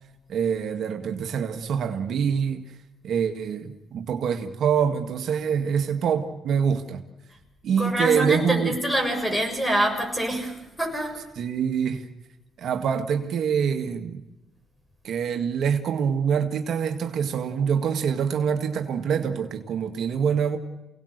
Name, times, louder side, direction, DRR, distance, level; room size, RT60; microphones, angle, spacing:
voice 1, 0.3-2.6 3.0-7.0 7.6-8.8 11.4-12.1 12.6-14.2 15.0-20.6, right 7 dB, 65° right, 6 dB, 1.9 m, -25 dB
voice 2, 7.8-11.2, right 1 dB, 10° left, 3 dB, 7.1 m, -25 dB
28.5 x 18.5 x 6.7 m, 0.97 s
cardioid pair, 90°, 0 cm